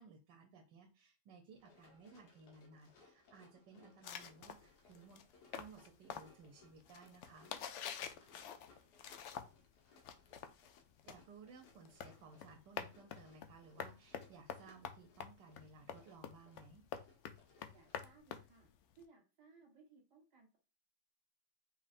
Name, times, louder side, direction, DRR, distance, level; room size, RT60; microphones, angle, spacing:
voice 1, 0.0-5.2 5.5-7.5 11.1-16.8, right 4 dB, 85° right, 3 dB, 1.4 m, -59 dB
Run, 1.5-18.2, left 3 dB, 70° left, 1.6 m, -68 dB
sound 1, 4.0-9.7 10.0-19.0, left 8 dB, 90° left, 0.6 m, -48 dB
voice 2, 17.7-18.7 19.0-20.6, right 4 dB, 70° right, -1 dB, 1.9 m, -65 dB
5.4 x 3.4 x 2.5 m, 0.33 s
omnidirectional pair, 1.8 m